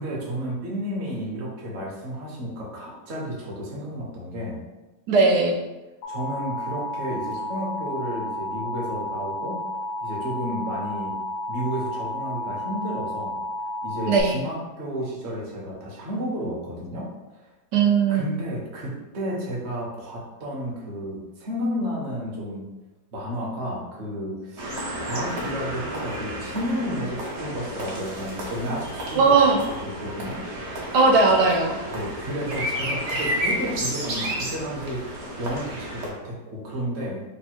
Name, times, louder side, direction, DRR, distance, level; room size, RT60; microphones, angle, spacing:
voice 1, 0.0-4.6 6.1-9.6 10.0-11.1 11.5-13.4 13.8-17.1 17.4-17.5 18.1-22.7 23.1-24.7 25.1-29.2 29.6-30.4 31.9-37.3, equal, 45° right, -3 dB, 1.0 m, -32 dB
voice 2, 5.1-5.6 14.1-14.3 17.7-18.3 29.1-29.6 30.9-31.8, right 4 dB, 90° right, 1 dB, 1.2 m, -18 dB
Alarm, 6.0-14.2, left 1 dB, 85° left, 1.2 m, -32 dB
sound 1, 24.6-36.1, equal, 65° right, 1.3 m, -32 dB
3.4 x 2.2 x 4.3 m, 1.1 s
omnidirectional pair, 1.7 m